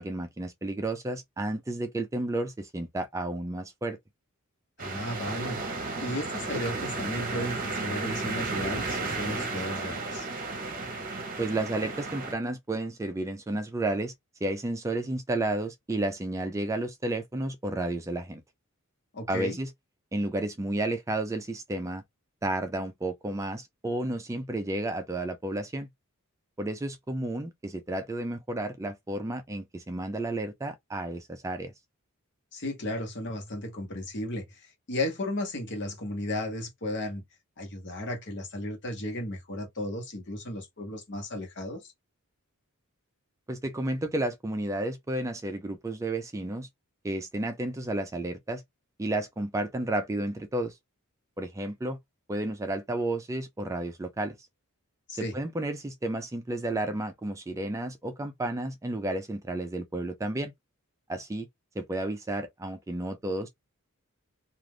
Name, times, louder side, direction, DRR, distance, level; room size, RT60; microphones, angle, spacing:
voice 1, 0.0-4.0 11.4-14.1 14.4-18.4 19.3-19.7 20.1-22.0 22.4-25.9 26.6-31.7 43.5-46.7 47.0-48.6 49.0-50.8 51.4-52.0 52.3-54.4 55.1-60.5 61.1-61.5 61.8-63.5, right 1 dB, 15° right, 0.3 m, -32 dB
voice 2, 4.8-10.3 19.1-19.6 32.5-37.2 37.6-41.9 55.1-55.4, left 1 dB, 55° left, 1.1 m, -34 dB
sound 1, 4.8-12.3, right 3 dB, 40° right, 0.8 m, -33 dB
2.4 x 2.4 x 3.1 m
head